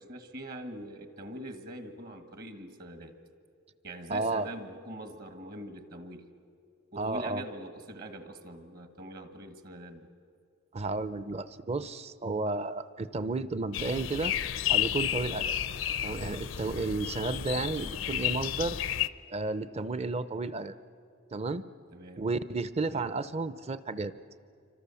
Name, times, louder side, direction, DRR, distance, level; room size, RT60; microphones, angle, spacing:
voice 1, 0.0-3.1 3.8-6.3 6.9-10.1 21.9-22.2 22.8-23.1, right 1 dB, 50° right, 8 dB, 1.6 m, -43 dB
voice 2, 4.1-4.5 7.0-7.4 10.7-14.3 14.7-15.6 16.0-18.8 19.3-20.8 21.3-21.6 22.2-24.1, right 3 dB, 30° right, 14 dB, 0.6 m, -32 dB
sound 1, 13.7-19.1, left 11 dB, 70° left, 0.5 m, -32 dB
27.5 x 25.0 x 7.0 m, 2.5 s
head